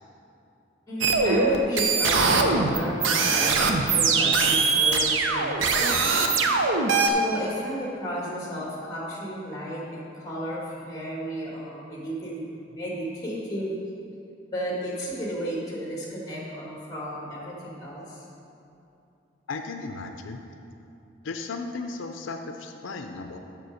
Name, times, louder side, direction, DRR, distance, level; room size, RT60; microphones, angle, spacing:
voice 1, 0.9-6.1 6.8-12.4 12.7-13.7 14.5-18.3, equal, 20° left, -4 dB, 1.9 m, -33 dB
sound 1, 1.0-7.1, right 4 dB, 85° right, 0.7 m, -22 dB
voice 2, 19.5-20.4 21.2-23.4, left 3 dB, 90° left, 6 dB, 0.5 m, -35 dB
6.9 x 6.0 x 6.4 m, 2.7 s
head